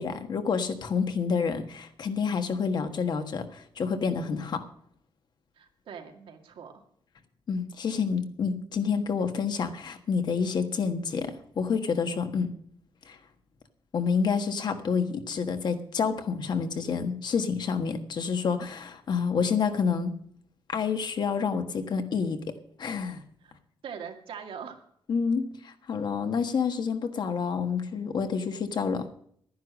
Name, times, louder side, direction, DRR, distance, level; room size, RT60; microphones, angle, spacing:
voice 1, 0.0-4.6 7.5-12.5 13.1-13.2 13.9-20.1 20.7-22.4 22.8-23.2 25.1-29.1, left 5 dB, 55° left, 8 dB, 1.5 m, -28 dB
voice 2, 5.6-6.8 23.4-23.5 23.8-24.8, right 7 dB, 85° right, 4 dB, 2.1 m, -42 dB
11.5 x 10.5 x 6.2 m, 0.65 s
wide cardioid pair, 165°, 9 cm